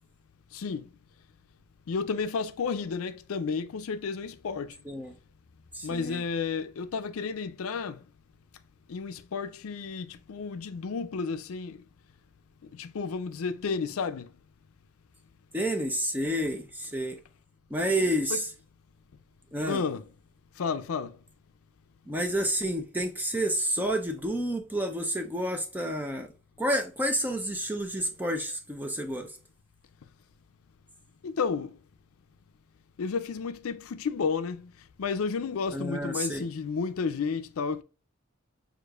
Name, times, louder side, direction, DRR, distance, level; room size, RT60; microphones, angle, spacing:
voice 1, 0.5-0.8 1.9-4.7 5.8-8.0 8.9-11.8 12.7-14.3 18.3-18.4 19.7-20.0 20.6-21.2 31.2-31.8 33.0-34.7 35.0-37.8, left 5 dB, 80° left, 0.4 m, -32 dB
voice 2, 4.8-5.2 5.7-6.2 15.5-17.2 17.7-18.5 19.5-19.8 22.1-26.3 26.6-29.4 35.7-36.5, right 1 dB, 10° right, 0.6 m, -30 dB
6.6 x 2.5 x 2.3 m
head